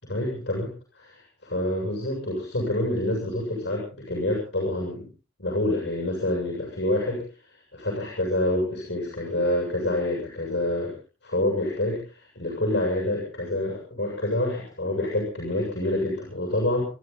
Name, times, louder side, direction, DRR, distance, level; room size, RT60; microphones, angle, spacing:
voice 1, 0.1-5.1 5.4-11.0 11.2-16.8, left 1 dB, 70° left, -1 dB, 7.6 m, -27 dB
29.5 x 12.0 x 4.0 m, 0.36 s
head